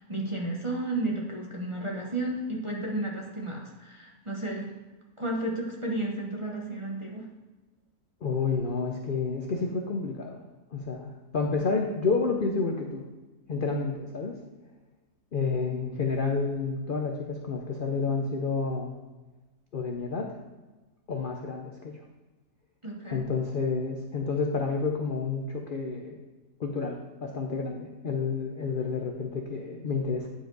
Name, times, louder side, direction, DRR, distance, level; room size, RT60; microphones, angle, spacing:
voice 1, 0.0-4.7 5.2-7.2 22.8-23.2, right 2 dB, 25° right, -2 dB, 0.8 m, -32 dB
voice 2, 8.2-10.4 10.7-13.0 13.5-14.4 15.3-18.9 19.7-20.3 21.1-21.9 23.1-26.1 26.6-30.3, left 4 dB, 55° left, 2 dB, 0.6 m, -30 dB
9.8 x 5.0 x 3.9 m, 1.2 s
omnidirectional pair, 1.6 m